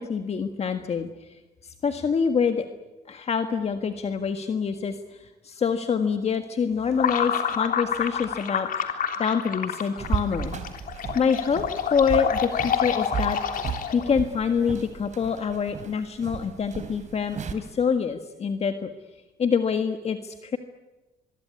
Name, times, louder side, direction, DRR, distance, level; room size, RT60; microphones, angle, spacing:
voice 1, 0.0-1.4 1.6-2.7 3.1-10.5 11.1-13.4 13.9-18.9 19.4-20.6, left 6 dB, 40° left, 7 dB, 1.7 m, -26 dB
sound 1, 6.9-14.2, left 8 dB, 55° left, 3.3 m, -28 dB
sound 2, 10.0-17.5, right 7 dB, 45° right, 3.7 m, -35 dB
25.0 x 22.5 x 9.6 m, 1.1 s
cardioid pair, 110°, 17 cm